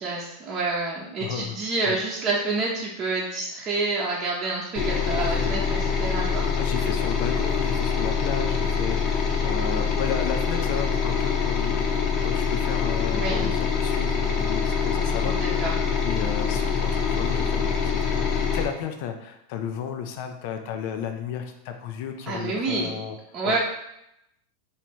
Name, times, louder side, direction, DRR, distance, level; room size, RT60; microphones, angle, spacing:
voice 1, 0.0-6.5 13.1-13.5 15.2-15.7 22.3-22.9 23.3-23.6, right 3 dB, 30° right, -5 dB, 0.8 m, -28 dB
voice 2, 1.2-1.6 1.8-2.0 5.2-5.6 6.6-11.8 12.2-15.7 16.0-23.2 23.4-23.6, left 8 dB, 60° left, 6 dB, 0.5 m, -33 dB
sound 1, 4.8-18.7, left 6 dB, 40° left, 0.8 m, -25 dB
3.0 x 2.8 x 4.4 m, 0.81 s
hypercardioid pair, 120°, 0 cm